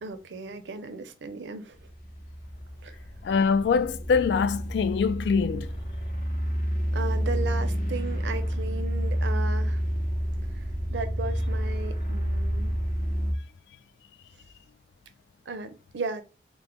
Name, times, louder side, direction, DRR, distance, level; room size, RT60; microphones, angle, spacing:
voice 1, 0.0-1.8 2.8-2.9 6.9-9.8 10.9-12.7 15.5-16.2, right 3 dB, 85° right, 0.5 m, -35 dB
sound 1, 1.8-13.3, equal, 45° left, 0.7 m, -29 dB
voice 2, 3.2-5.7, left 5 dB, 75° left, 0.3 m, -24 dB
2.9 x 2.1 x 3.3 m
head